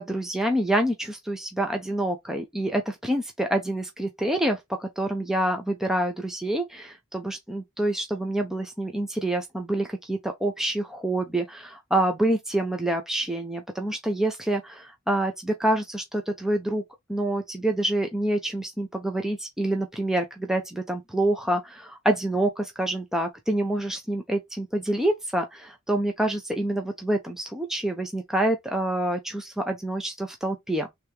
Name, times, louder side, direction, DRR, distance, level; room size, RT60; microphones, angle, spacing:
voice 1, 0.0-16.8 17.1-30.9, right 1 dB, ahead, 0.6 m, -27 dB
3.4 x 3.3 x 4.5 m
head